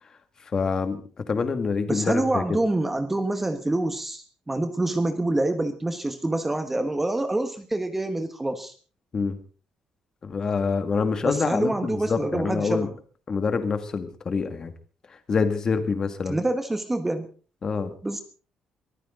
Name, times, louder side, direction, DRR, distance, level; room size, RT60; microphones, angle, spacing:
voice 1, 0.4-2.6 9.1-9.4 10.2-12.9 13.3-14.7 15.1-16.4 17.6-17.9, left 5 dB, 30° left, 9 dB, 2.1 m, -26 dB
voice 2, 1.9-8.7 11.2-12.9 16.3-17.3 18.0-18.2, right 2 dB, 10° right, 8 dB, 1.4 m, -26 dB
23.0 x 14.5 x 3.9 m, 0.39 s
cardioid pair, 150°, 2 cm